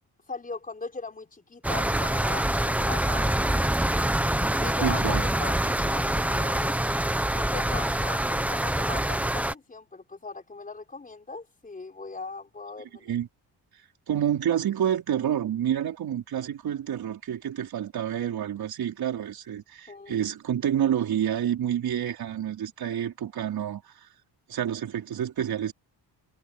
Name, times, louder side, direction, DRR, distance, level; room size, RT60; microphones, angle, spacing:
voice 1, 0.3-3.7 4.6-6.8 7.3-13.1 19.9-20.3, left 3 dB, 20° left, 4.7 m, -39 dB
sound 1, 1.6-9.5, right 1 dB, 5° right, 0.9 m, -25 dB
voice 2, 4.8-5.2 13.0-13.3 14.1-24.1 24.5-25.7, right 10 dB, 65° right, 4.8 m, -28 dB
cardioid pair, 155°, 40 cm